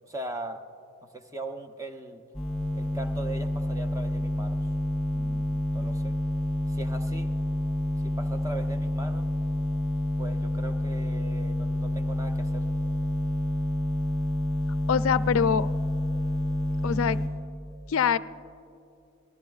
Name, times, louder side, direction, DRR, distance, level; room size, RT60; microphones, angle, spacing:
voice 1, 0.1-0.6 1.1-2.2 2.7-4.7 5.1-6.2 6.7-7.3 8.0-9.3 10.2-12.7, right 2 dB, 15° right, 6 dB, 0.7 m, -40 dB
sound 1, 2.3-17.3, left 1 dB, 5° left, 3.6 m, -28 dB
voice 2, 14.9-15.7 16.8-17.2 17.9-18.2, left 7 dB, 70° left, 15 dB, 0.4 m, -24 dB
28.5 x 19.5 x 2.4 m, 2.6 s
head